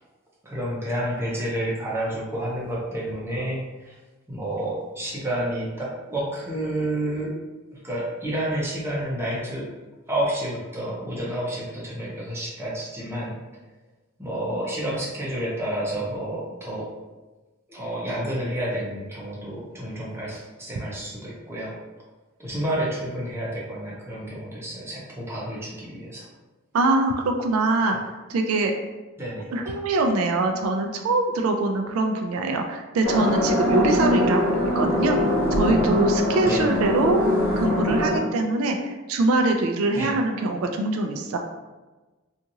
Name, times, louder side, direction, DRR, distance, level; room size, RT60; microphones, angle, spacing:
voice 1, 0.4-3.9 4.3-7.3 7.8-9.7 10.1-13.3 14.2-16.9 17.7-21.7 22.4-26.3 29.2-29.7 36.4-36.7 39.9-40.1, right 1 dB, 10° right, -5 dB, 0.6 m, -30 dB
voice 2, 26.7-28.0 28.3-28.7 29.5-37.2 37.6-41.4, right 2 dB, 75° right, 4 dB, 0.3 m, -23 dB
sound 1, 33.0-38.2, left 1 dB, 70° left, 1.4 m, -22 dB
2.8 x 2.4 x 2.6 m, 1.2 s
head